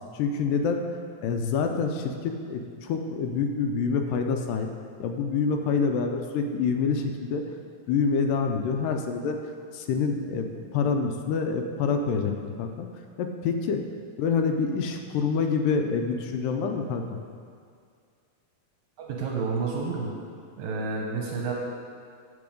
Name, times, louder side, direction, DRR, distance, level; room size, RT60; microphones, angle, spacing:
voice 1, 0.1-0.8 1.2-4.7 5.0-7.4 7.9-9.4 9.7-10.5 10.7-12.9 13.2-13.8 14.2-17.2, left 5 dB, 80° left, 4 dB, 2.2 m, -26 dB
voice 2, 19.0-20.1 20.6-21.5, right 4 dB, 70° right, -1 dB, 1.9 m, -30 dB
7.7 x 6.9 x 5.2 m, 2.2 s
omnidirectional pair, 3.9 m